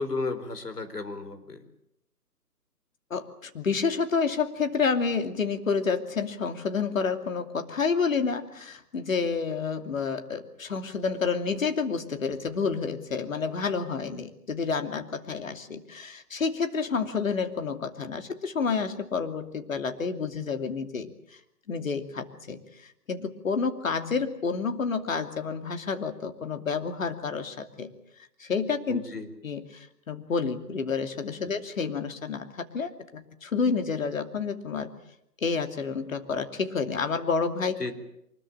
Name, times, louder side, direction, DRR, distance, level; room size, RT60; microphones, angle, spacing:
voice 1, 0.0-1.6 28.9-29.3 31.4-31.5 37.8-37.9, left 3 dB, 75° left, 9 dB, 4.4 m, -33 dB
voice 2, 3.1-21.1 21.7-27.9 28.4-29.0 29.4-34.9 35.4-37.8, left 5 dB, 55° left, 8 dB, 2.8 m, -29 dB
24.5 x 21.0 x 8.7 m, 0.76 s
figure-of-eight pair, 145°, 48 cm